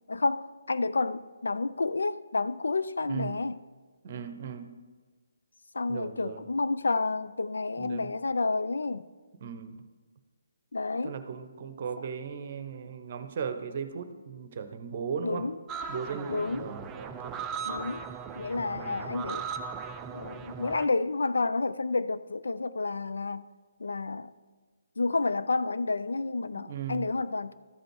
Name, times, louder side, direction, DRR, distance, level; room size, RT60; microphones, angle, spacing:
voice 1, 0.1-3.6 5.7-9.1 10.7-11.2 12.0-12.1 15.2-15.6 16.3-16.8 17.6-18.1 18.4-19.4 20.1-23.5 23.8-24.3 25.0-27.5, left 3 dB, 70° left, 0.4 m, -30 dB
voice 2, 4.0-4.7 5.9-6.4 7.8-8.1 9.4-9.8 11.0-15.5 15.9-17.4 18.8-19.1 26.6-27.0, right 6 dB, 40° right, 0.8 m, -37 dB
sound 1, 15.7-20.9, right 6 dB, 15° right, 0.4 m, -38 dB
13.0 x 5.1 x 4.6 m
figure-of-eight pair, 140°, 0 cm